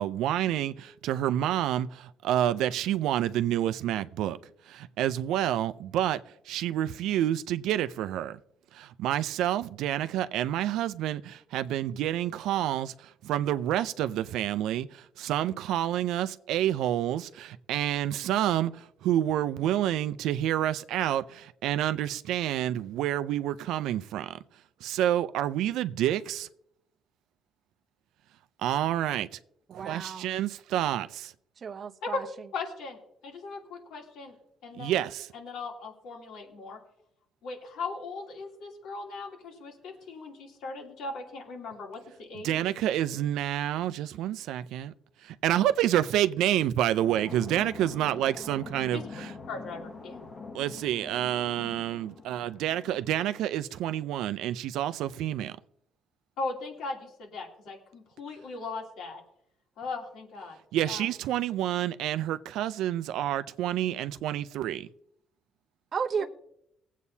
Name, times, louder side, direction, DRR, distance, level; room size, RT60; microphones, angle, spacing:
voice 1, 0.0-4.4 4.7-6.2 6.5-8.4 8.7-24.4 24.8-26.5 28.6-29.3 29.7-31.3 34.8-35.3 42.4-44.9 45.4-49.3 50.5-55.6 60.7-64.9, right 12 dB, 90° right, 0.5 m, -28 dB
voice 2, 29.7-30.3 31.6-32.3 65.9-66.3, right 6 dB, 50° right, 0.7 m, -33 dB
voice 3, 32.5-33.0 33.2-34.3 34.6-34.9 35.3-36.8 37.4-42.6 48.9-49.0 49.5-50.2 56.4-59.2 59.8-60.6 60.8-61.0 66.2-66.3, left 3 dB, 85° left, 3.0 m, -38 dB
sound 1, 47.0-53.4, left 4 dB, 40° left, 1.4 m, -45 dB
19.5 x 8.3 x 2.8 m
cardioid pair, 90°, 0 cm